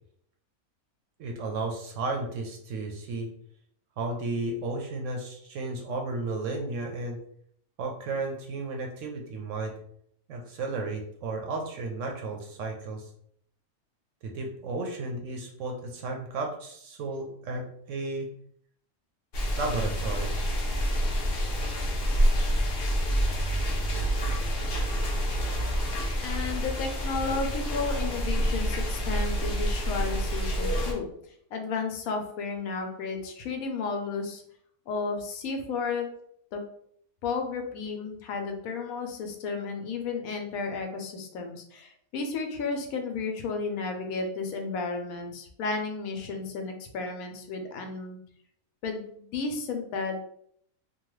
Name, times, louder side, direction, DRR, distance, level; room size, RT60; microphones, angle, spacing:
voice 1, 1.2-3.3 4.0-7.2 7.8-9.7 10.3-13.1 14.2-17.6 17.9-18.3 19.6-20.3, right 3 dB, 65° right, 2 dB, 0.8 m, -33 dB
sound 1, 19.3-30.9, equal, 55° left, 0.7 m, -27 dB
voice 2, 26.2-31.1 31.5-34.4 34.9-36.1 36.5-36.6 37.2-48.2 48.8-50.2, left 4 dB, 75° left, 4 dB, 1.0 m, -33 dB
2.8 x 2.2 x 3.0 m, 0.67 s
omnidirectional pair, 1.5 m